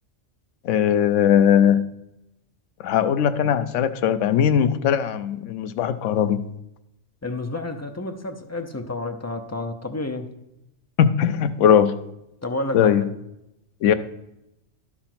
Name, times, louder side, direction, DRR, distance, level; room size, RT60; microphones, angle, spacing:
voice 1, 0.6-1.9 2.8-6.5 11.0-12.0 12.7-13.1 13.8-13.9, left 9 dB, 75° left, 11 dB, 0.9 m, -19 dB
voice 2, 7.2-10.3 12.4-13.1, left 2 dB, 25° left, 5 dB, 0.4 m, -30 dB
11.5 x 4.8 x 5.9 m, 0.87 s
omnidirectional pair, 1.3 m